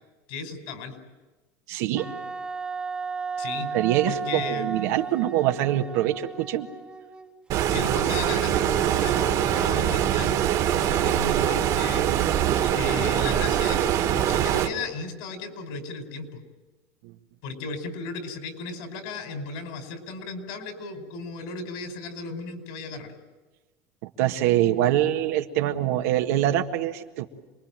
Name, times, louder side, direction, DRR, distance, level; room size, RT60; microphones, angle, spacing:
voice 1, 0.3-1.0 3.4-3.7 4.1-4.7 7.7-10.4 10.7-12.1 12.6-16.4 17.4-23.1, left 3 dB, 70° left, 6 dB, 5.3 m, -35 dB
voice 2, 1.7-2.1 3.7-6.7 17.0-17.1 24.0-27.3, right 13 dB, 75° right, 5 dB, 1.8 m, -24 dB
Wind instrument woodwind instrument, 2.0-7.4, right 5 dB, 10° right, 1.4 m, -34 dB
Stream, 7.5-14.7, right 10 dB, 45° right, 2.1 m, -23 dB
27.5 x 21.0 x 9.1 m, 1.2 s
supercardioid pair, 140°, 9 cm